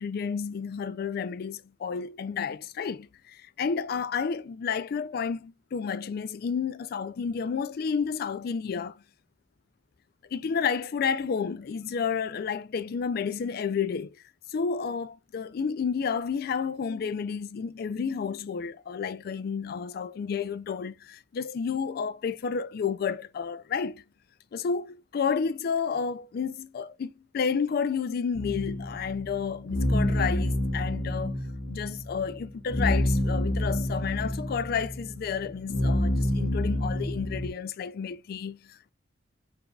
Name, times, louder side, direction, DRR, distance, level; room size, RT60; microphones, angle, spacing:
voice 1, 0.0-9.0 10.3-14.2 14.5-24.0 24.5-31.4 31.7-38.9, left 6 dB, 55° left, 0.3 m, -31 dB
sound 1, 28.3-37.5, left 1 dB, 80° left, 1.1 m, -28 dB
4.6 x 3.3 x 2.2 m
head